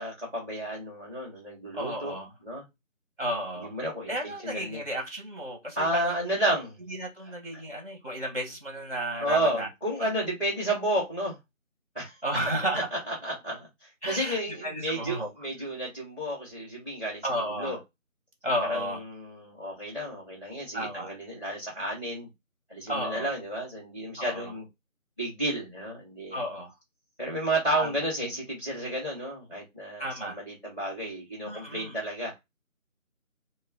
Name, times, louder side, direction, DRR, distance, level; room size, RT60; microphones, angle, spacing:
voice 1, 0.0-2.6 3.6-4.8 5.7-6.8 9.2-11.4 11.9-12.2 13.1-17.8 18.7-22.3 22.7-24.7 25.2-26.4 27.2-32.3, right 1 dB, 10° right, 2.1 m, -32 dB
voice 2, 1.7-2.3 3.2-3.7 4.1-6.2 6.9-9.7 10.0-10.1 12.2-12.9 14.0-15.3 17.2-17.7 18.4-19.0 20.7-21.1 22.9-23.3 24.2-24.5 26.3-26.7 27.8-28.0 30.0-30.4 31.4-32.0, right 1 dB, 45° right, 1.7 m, -33 dB
4.8 x 2.2 x 3.9 m
figure-of-eight pair, 175°, 41 cm